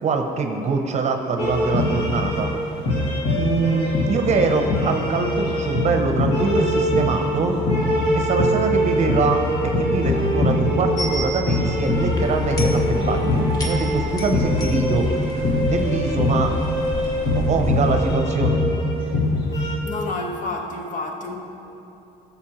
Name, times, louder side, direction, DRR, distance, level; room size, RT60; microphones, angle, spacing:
voice 1, 0.0-2.5 3.3-7.6 8.1-15.2 15.7-16.5 17.3-18.6, right 4 dB, 45° right, 4 dB, 0.7 m, -24 dB
sound 1, 1.4-19.8, left 1 dB, 75° left, 1.9 m, -22 dB
sound 2, 11.0-18.2, right 1 dB, 25° left, 1.2 m, -33 dB
voice 2, 19.8-21.4, left 2 dB, 50° left, 1 dB, 1.2 m, -30 dB
14.0 x 6.8 x 3.0 m, 3.0 s
cardioid pair, 110°, 17 cm